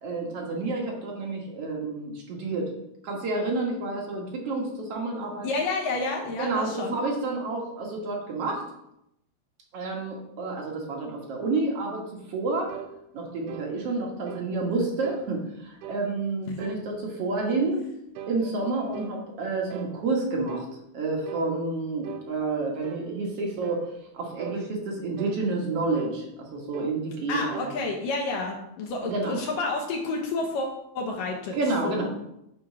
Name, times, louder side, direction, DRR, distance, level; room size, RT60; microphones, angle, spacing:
voice 1, 0.0-2.7 3.0-5.5 6.4-8.6 9.7-12.7 13.1-17.8 18.3-20.7 20.9-23.8 24.1-27.7 29.0-29.4 31.5-32.1, right 3 dB, 55° right, 0 dB, 1.8 m, -29 dB
voice 2, 5.4-7.0 16.5-16.6 27.3-31.6 31.8-32.1, left 3 dB, 70° left, 0 dB, 2.3 m, -30 dB
sound 1, 12.7-12.9 13.5-13.7 14.3-14.5 15.0-15.3 15.8-16.1 16.6-16.9 17.4-17.6 18.2-19.2 19.7-20.0 20.5-20.7 21.3-21.5 22.0-22.3 22.8-23.1 23.6-23.9 24.4-24.6 25.2-25.4 26.0-26.2 26.7-27.0 27.5-27.7, right 10 dB, 85° right, 2.8 m, -40 dB
9.9 x 4.5 x 6.1 m, 0.82 s
omnidirectional pair, 4.7 m